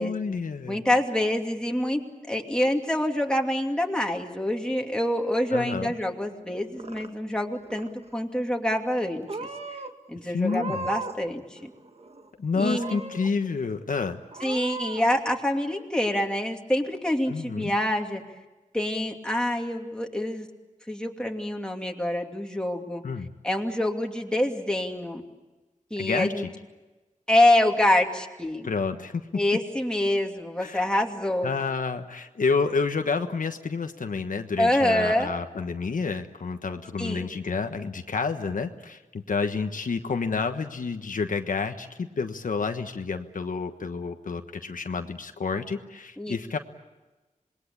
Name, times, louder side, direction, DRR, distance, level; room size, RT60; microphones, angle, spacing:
voice 1, 0.0-0.8 5.5-5.9 10.3-10.9 12.4-14.2 17.3-17.7 23.0-23.3 26.0-26.3 28.6-29.2 30.6-30.9 31.4-46.6, left 4 dB, 80° left, 6 dB, 1.3 m, -29 dB
voice 2, 0.7-2.0 2.3-9.5 10.1-11.7 12.5-13.0 14.4-18.2 18.7-20.5 20.9-23.0 23.4-25.2 25.9-26.5 27.3-28.7 29.3-31.5 34.6-35.3 37.0-37.3 46.2-46.4, left 1 dB, 5° left, 2 dB, 2.7 m, -26 dB
Purr / Meow, 6.5-7.4 7.6-8.2 8.9-9.0 9.3-9.9 10.4-11.3 11.6-12.3 12.7-13.3 13.7-13.8 14.3-15.1, right 3 dB, 50° right, 1.6 m, -37 dB
27.0 x 21.0 x 8.7 m, 1.2 s
wide cardioid pair, 95°, 14 cm